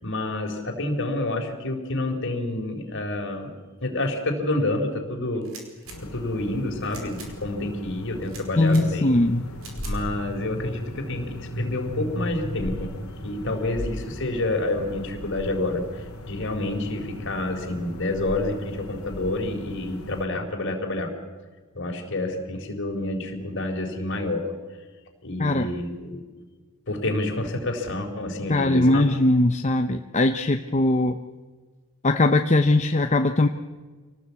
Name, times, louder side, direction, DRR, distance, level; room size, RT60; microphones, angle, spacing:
voice 1, 0.0-3.5 3.8-5.5 6.0-9.2 9.8-12.9 13.2-21.1 21.7-24.5 25.2-26.2 26.9-29.1, left 2 dB, 55° left, 3 dB, 4.1 m, -28 dB
sound 1, 5.4-6.0 6.8-7.3 8.2-8.8 9.6-10.0, right 4 dB, 70° right, 5.1 m, -43 dB
sound 2, 5.9-20.3, equal, 70° left, 2.5 m, -36 dB
voice 2, 8.6-9.4 25.4-25.7 28.5-31.2 32.0-33.5, left 2 dB, 30° left, 6 dB, 0.8 m, -20 dB
26.5 x 18.5 x 8.4 m, 1.4 s
head